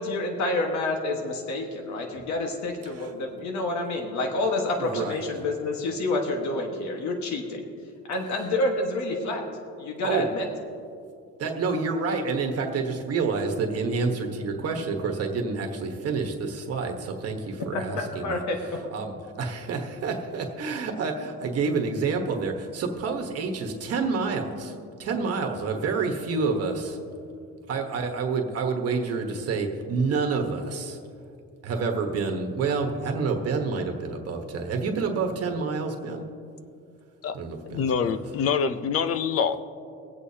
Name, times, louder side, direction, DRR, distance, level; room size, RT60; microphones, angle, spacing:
voice 1, 0.0-7.6 8.1-9.4 9.8-10.5 17.7-18.8, left 2 dB, 70° left, 1 dB, 1.5 m, -28 dB
voice 2, 4.8-5.2 10.0-10.3 11.4-16.9 17.2-17.4 17.6-18.4 18.9-19.1 19.4-24.7 25.0-26.9 27.7-30.9 31.6-36.2 37.3-37.9, right 4 dB, 55° right, 3 dB, 1.2 m, -28 dB
voice 3, 37.6-39.6, left 6 dB, 50° left, 11 dB, 0.6 m, -25 dB
24.0 x 8.3 x 2.8 m, 2.5 s
cardioid pair, 160°, 30 cm